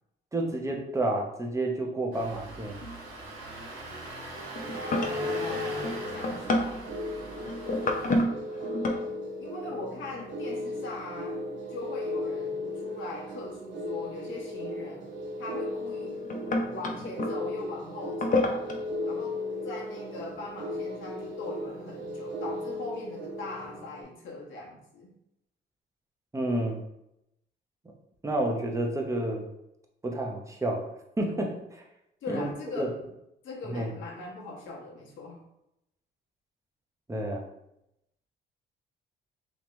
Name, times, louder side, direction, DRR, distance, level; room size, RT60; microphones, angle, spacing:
voice 1, 0.3-2.8 26.3-26.8 28.2-29.5 30.0-30.9 31.2-31.8 32.3-32.4 32.8-32.9 33.7-33.9 37.1-37.4, right 1 dB, 15° right, 0 dB, 0.7 m, -30 dB
sound 1, 0.7-0.8 2.8-3.3 3.6-3.9 4.4-9.0 10.1-10.6 12.6-12.7 15.0-15.1 15.9-17.3 18.1-18.8, left 1 dB, 40° left, 0.7 m, -30 dB
Engine starting, 2.1-8.2, right 2 dB, 90° right, 1.1 m, -41 dB
sound 2, 4.6-24.0, left 1 dB, 65° right, 0.8 m, -36 dB
voice 2, 4.7-6.8 9.4-15.1 15.4-16.2 16.7-18.5 19.0-25.1 32.2-32.9 33.4-35.4, left 3 dB, 75° left, -3 dB, 1.3 m, -40 dB
3.5 x 3.0 x 3.1 m, 0.83 s
cardioid pair, 90°, 20 cm